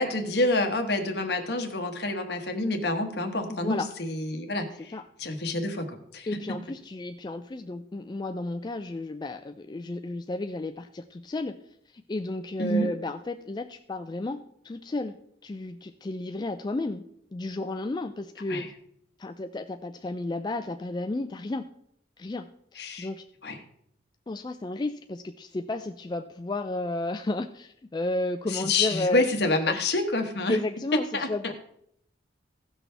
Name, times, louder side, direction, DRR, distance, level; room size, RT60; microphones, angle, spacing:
voice 1, 0.0-6.3 12.6-12.9 18.5-18.7 22.8-23.1 23.4-23.6 28.5-30.6 30.9-31.5, left 2 dB, 60° left, 5 dB, 1.2 m, -28 dB
voice 2, 3.5-3.9 4.9-5.0 6.3-11.6 11.9-15.2 15.4-17.0 17.3-18.7 19.2-21.7 22.2-23.2 24.3-29.2 29.7-29.8 30.5-31.5, left 2 dB, 25° left, 8 dB, 0.3 m, -33 dB
16.5 x 6.2 x 3.4 m, 0.73 s
head